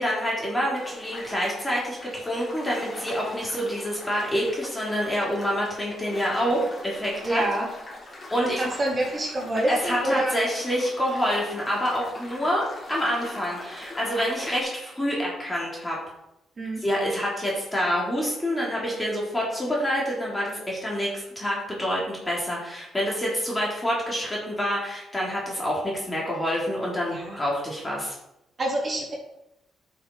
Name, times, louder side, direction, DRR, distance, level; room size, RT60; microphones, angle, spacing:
voice 1, 0.0-7.4 8.3-8.7 9.7-16.0 16.8-28.2, equal, 15° left, -4 dB, 3.6 m, -27 dB
sound 1, 0.7-14.6, left 1 dB, 30° left, 3.7 m, -42 dB
voice 2, 7.2-7.7 8.4-10.3 16.6-16.8 27.1-27.4 28.6-29.1, right 1 dB, 35° right, -4 dB, 4.0 m, -27 dB
11.5 x 6.6 x 4.2 m, 0.87 s
cardioid pair, 90°, 0 cm